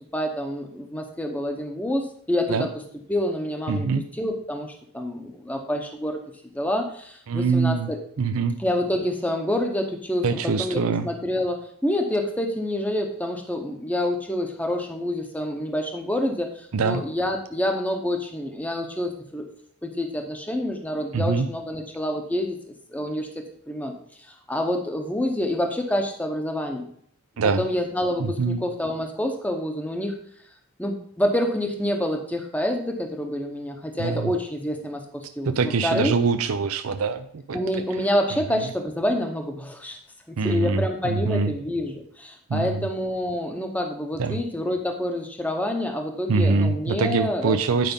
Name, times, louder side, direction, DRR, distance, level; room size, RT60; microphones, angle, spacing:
voice 1, 0.1-2.7 3.1-3.9 4.1-6.2 6.5-8.0 8.6-10.2 10.6-19.4 19.8-22.6 22.9-23.9 24.3-26.9 27.6-30.2 30.8-35.5 35.8-36.1 37.5-40.0 40.3-47.9, left 1 dB, 5° left, 3 dB, 0.8 m, -27 dB
voice 2, 3.7-4.0 7.3-7.9 8.2-8.6 10.2-11.1 16.7-17.0 21.1-21.5 27.4-27.7 28.2-28.6 34.0-34.3 35.4-37.6 40.4-41.5 42.5-42.8 44.2-44.4 46.3-47.9, right 4 dB, 80° right, 8 dB, 0.5 m, -24 dB
9.3 x 5.1 x 5.3 m, 0.64 s
head